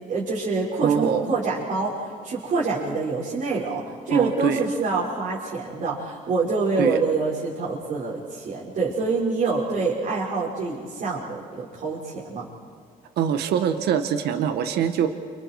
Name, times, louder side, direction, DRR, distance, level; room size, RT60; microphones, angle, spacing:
voice 1, 0.1-12.5, right 4 dB, 55° right, -7 dB, 6.3 m, -26 dB
voice 2, 0.8-1.3 4.1-4.6 6.8-7.0 13.2-15.1, right 8 dB, 75° right, 8 dB, 1.8 m, -23 dB
29.5 x 29.0 x 5.0 m, 2.2 s
cardioid pair, 110°, 17 cm